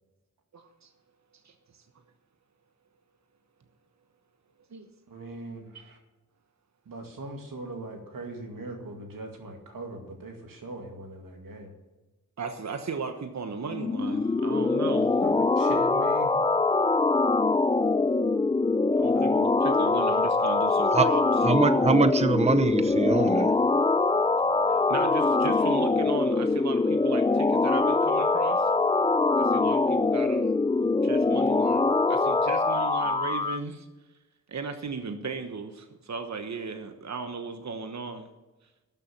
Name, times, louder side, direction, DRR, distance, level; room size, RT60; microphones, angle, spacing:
voice 1, 0.5-0.9 1.3-1.8 4.7-4.9 5.7-5.8 12.4-15.2 19.0-21.2 24.7-28.7 29.4-30.5 30.8-33.9 34.5-38.3, right 4 dB, 55° right, 6 dB, 1.1 m, -36 dB
voice 2, 5.1-6.0 6.9-11.7 15.2-16.3 19.1-19.2 19.8-19.9, right 2 dB, 85° right, 2 dB, 2.2 m, -40 dB
sound 1, 13.7-33.6, left 3 dB, 15° left, 0.4 m, -23 dB
voice 3, 21.4-23.5, right 3 dB, 20° right, 11 dB, 0.7 m, -23 dB
12.5 x 7.0 x 7.1 m, 1.1 s
cardioid pair, 65°, 33 cm